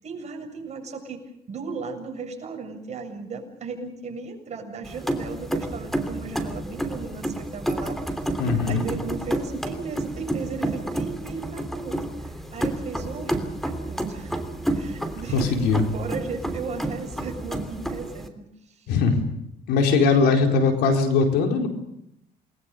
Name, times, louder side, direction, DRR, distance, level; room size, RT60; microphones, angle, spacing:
voice 1, 0.0-1.2 1.5-8.3 8.7-14.3 14.7-18.9 20.2-20.5, right 4 dB, 40° right, 2 dB, 7.3 m, -36 dB
sound 1, 4.8-18.3, right 1 dB, ahead, 3.1 m, -30 dB
voice 2, 8.4-8.9 15.3-15.8 18.9-19.2 19.7-21.7, left 4 dB, 85° left, 3 dB, 4.5 m, -20 dB
28.5 x 20.5 x 6.8 m, 0.79 s
cardioid pair, 110°, 17 cm